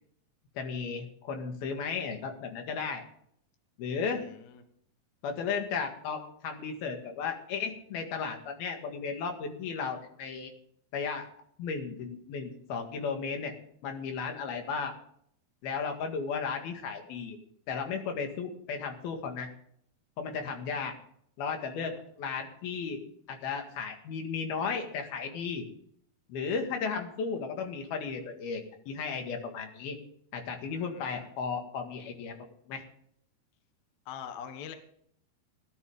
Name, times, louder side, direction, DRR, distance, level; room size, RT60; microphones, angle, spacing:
voice 1, 0.6-3.0 3.8-4.2 5.2-10.5 10.9-11.3 11.6-13.5 13.8-14.9 15.6-17.4 17.7-19.5 20.2-20.9 21.4-23.0 23.3-25.7 26.3-30.0 30.3-32.4 32.7-32.8, left 5 dB, 75° left, 4 dB, 3.7 m, -35 dB
voice 2, 4.1-4.6 30.7-31.3 34.1-34.8, left 8 dB, 60° left, 8 dB, 2.1 m, -44 dB
18.0 x 11.5 x 3.6 m, 0.67 s
omnidirectional pair, 4.4 m